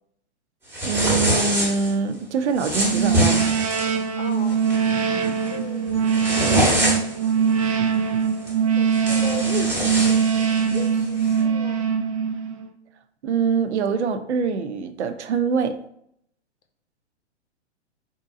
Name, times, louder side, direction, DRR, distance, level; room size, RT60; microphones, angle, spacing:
sound 1, 0.7-1.9 2.6-4.0 4.5-4.8 5.2-5.5 5.9-7.3 8.5-8.6 8.9-10.9, equal, 5° right, 0.9 m, -24 dB
voice 1, 0.8-3.5 13.2-15.8, right 5 dB, 75° right, 9 dB, 0.6 m, -24 dB
sound 2, 2.8-12.7, right 7 dB, 30° right, 0.4 m, -22 dB
voice 2, 4.2-4.6 5.5-6.3 8.6-11.8, left 5 dB, 80° left, 6 dB, 0.9 m, -37 dB
3.6 x 2.8 x 3.6 m, 0.71 s
hypercardioid pair, 120°, 34 cm